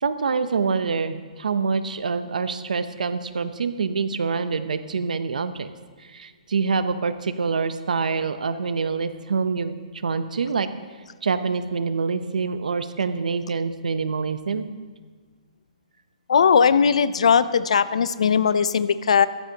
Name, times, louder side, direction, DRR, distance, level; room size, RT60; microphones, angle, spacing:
voice 1, 0.0-5.7 6.0-9.7 10.0-10.7 11.2-14.7, right 5 dB, 85° right, 11 dB, 0.8 m, -26 dB
voice 2, 16.3-19.3, left 6 dB, 55° left, 15 dB, 0.5 m, -19 dB
14.5 x 13.5 x 2.9 m, 1.5 s
hypercardioid pair, 180°, 4 cm